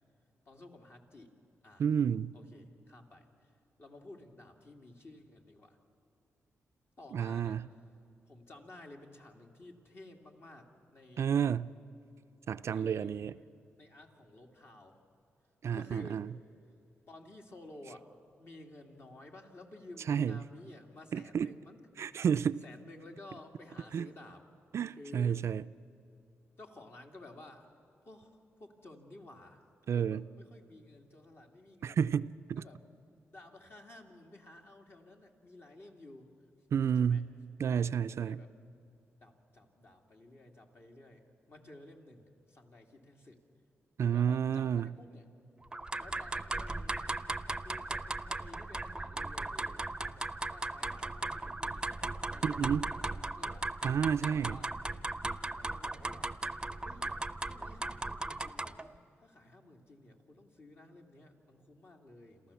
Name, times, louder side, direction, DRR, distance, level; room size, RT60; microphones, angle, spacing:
voice 1, 0.4-1.3 1.6-1.8 2.3-3.5 3.8-5.8 7.0-7.6 8.3-11.3 12.7-13.5 13.7-15.0 15.7-16.2 17.1-18.1 18.4-21.8 22.6-24.4 25.0-25.4 26.6-27.7 28.1-29.7 29.9-32.1 32.5-32.8 33.3-36.3 37.0-37.2 37.8-38.5 39.2-43.4 44.0-45.3 46.0-47.0 47.6-53.7 54.2-54.7 55.5-56.3 56.8-57.2 57.4-62.5, left 2 dB, 50° left, 2.5 m, -54 dB
voice 2, 1.8-2.3 7.1-7.7 11.2-11.7 12.5-13.3 15.6-16.3 20.1-20.4 21.1-21.5 22.0-22.6 23.9-24.1 24.7-25.6 29.9-30.2 31.8-32.6 36.7-37.3 37.6-38.4 44.0-44.9 52.4-52.9 53.8-54.6, right 7 dB, 65° right, 0.4 m, -30 dB
sound 1, 45.7-58.9, right 2 dB, 15° right, 0.6 m, -37 dB
27.0 x 14.5 x 7.1 m
cardioid pair, 60°, 5 cm